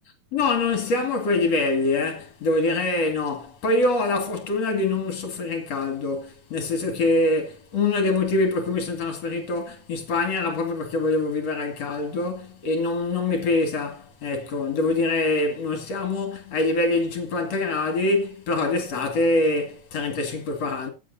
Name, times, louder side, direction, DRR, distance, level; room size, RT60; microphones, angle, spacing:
voice 1, 0.3-20.9, left 2 dB, 50° left, 3.2 m, -24 dB
16.0 x 8.3 x 2.8 m
omnidirectional pair, 4.0 m